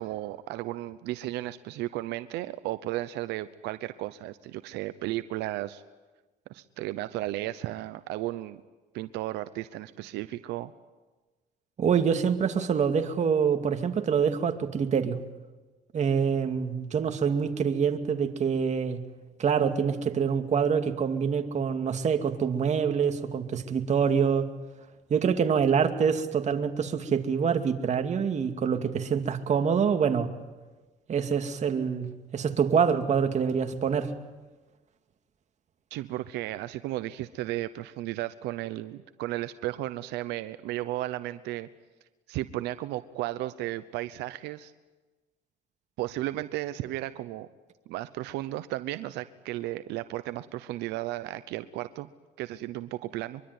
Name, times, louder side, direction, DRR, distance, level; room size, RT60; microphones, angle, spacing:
voice 1, 0.0-5.8 6.5-8.6 8.9-10.7 35.9-41.7 42.3-44.7 46.0-47.5 47.9-52.1 52.4-53.4, right 16 dB, 90° right, 13 dB, 0.9 m, -34 dB
voice 2, 11.8-15.2 15.9-19.0 19.4-24.5 25.1-30.3 31.1-34.1, right 6 dB, 45° right, 6 dB, 2.4 m, -26 dB
24.0 x 23.5 x 9.6 m, 1.2 s
cardioid pair, 110°, 17 cm